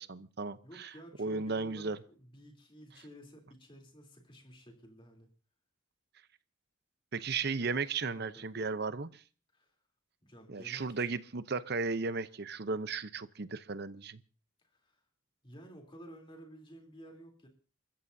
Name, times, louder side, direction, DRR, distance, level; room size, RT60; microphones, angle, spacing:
voice 1, 0.0-0.9 1.2-2.0 7.1-9.1 10.5-14.2, right 4 dB, 55° right, 0.8 m, -35 dB
voice 2, 0.6-5.3 7.6-7.8 8.1-8.7 9.5-9.7 10.2-11.1 14.6-15.0 15.4-17.5, equal, 25° left, 3.3 m, -53 dB
30.0 x 14.5 x 2.7 m
head